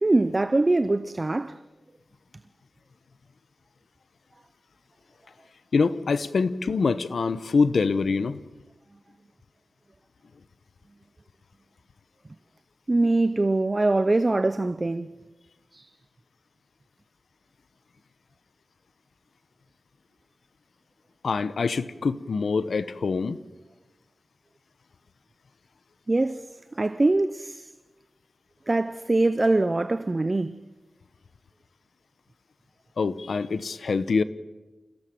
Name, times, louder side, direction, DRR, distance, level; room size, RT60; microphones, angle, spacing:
voice 1, 0.0-1.6 12.9-15.1 15.7-15.9 26.1-26.5 26.8-27.7 28.7-30.6, right 2 dB, 35° right, 0.8 m, -23 dB
voice 2, 5.7-8.4 21.2-23.4 33.0-34.2, left 4 dB, 85° left, 1.0 m, -25 dB
28.5 x 17.0 x 7.8 m
wide cardioid pair, 80°, 0 cm